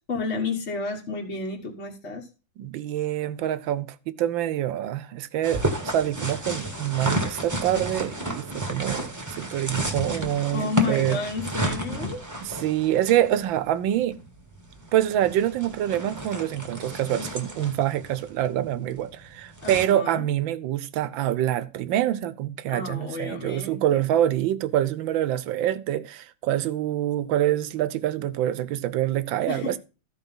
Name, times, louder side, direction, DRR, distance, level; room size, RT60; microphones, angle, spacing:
voice 1, 0.1-2.3 10.5-12.2 19.6-20.3 22.7-24.1 29.5-29.8, left 4 dB, 40° left, 1.6 m, -31 dB
voice 2, 2.6-11.2 12.4-14.2 14.9-29.8, right 12 dB, 85° right, 1.5 m, -26 dB
sound 1, 5.4-19.9, right 1 dB, 10° right, 1.1 m, -32 dB
13.5 x 4.7 x 5.4 m
omnidirectional pair, 2.1 m